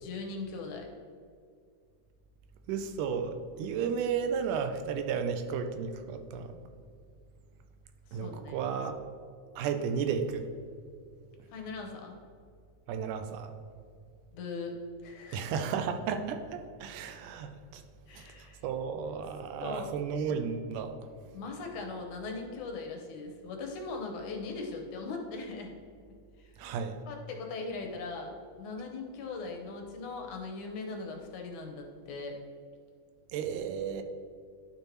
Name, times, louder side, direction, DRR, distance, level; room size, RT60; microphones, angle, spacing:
voice 1, 0.0-0.9 8.1-8.6 11.5-12.2 14.3-14.8 15.0-15.5 18.1-18.6 19.6-19.9 21.3-25.7 26.4-26.5 27.1-32.4, left 3 dB, 75° left, 2 dB, 2.3 m, -40 dB
voice 2, 2.7-6.5 8.1-8.9 9.6-10.4 12.9-13.5 15.3-17.8 18.1-18.3 18.6-21.0 26.6-26.9 33.3-34.0, right 6 dB, 85° right, 7 dB, 2.2 m, -33 dB
11.5 x 5.5 x 3.0 m, 2.2 s
omnidirectional pair, 3.6 m